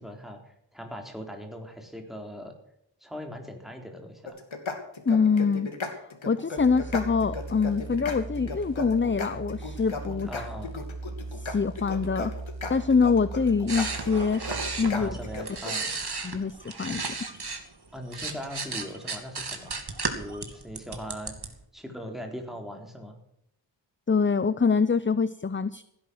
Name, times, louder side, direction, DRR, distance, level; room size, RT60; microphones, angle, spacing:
voice 1, 0.0-2.6 3.0-4.4 10.2-10.7 14.9-15.9 17.9-19.8 20.1-23.2, equal, ahead, 3 dB, 4.0 m, -40 dB
sound 1, 4.3-15.7, left 3 dB, 90° left, 2.8 m, -36 dB
voice 2, 5.1-5.7 6.3-10.4 11.3-12.3 12.7-14.4 14.8-15.2 16.2-17.0 24.1-25.8, left 5 dB, 25° left, 16 dB, 0.6 m, -25 dB
sound 2, 6.6-15.5, right 3 dB, 80° right, 2.5 m, -39 dB
sound 3, 13.7-17.6 18.0-21.5, right 4 dB, 55° right, 2.6 m, -34 dB
16.5 x 10.5 x 6.5 m, 0.77 s
wide cardioid pair, 80°, 46 cm